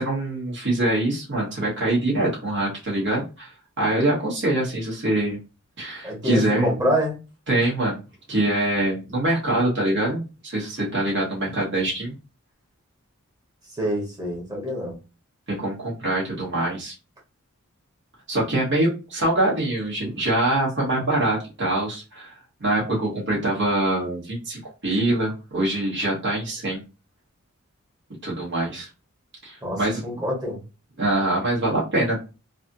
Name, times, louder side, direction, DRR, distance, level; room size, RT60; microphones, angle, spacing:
voice 1, 0.0-5.4 5.8-6.7 7.5-8.0 8.3-12.1 15.5-16.9 18.3-22.3 22.6-26.8 28.2-28.9 29.4-30.0 31.0-32.2, right 1 dB, 60° right, -4 dB, 1.4 m, -24 dB
voice 2, 6.0-7.2 13.8-14.9 29.6-30.6, equal, 20° right, -2 dB, 1.3 m, -26 dB
3.3 x 2.6 x 2.7 m, 0.30 s
head